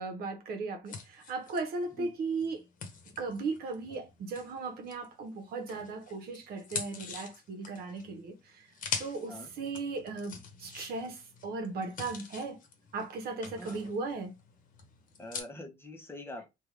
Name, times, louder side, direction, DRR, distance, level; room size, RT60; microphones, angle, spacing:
voice 1, 0.0-2.6 3.2-8.7 9.0-12.6 12.9-14.3, right 3 dB, 65° right, 0.9 m, -37 dB
sound 1, 0.9-5.2 5.7-15.4, left 5 dB, 50° left, 0.9 m, -44 dB
voice 2, 13.6-13.9 15.2-16.5, left 1 dB, 15° left, 0.9 m, -44 dB
3.5 x 2.3 x 3.1 m
cardioid pair, 110°, 17 cm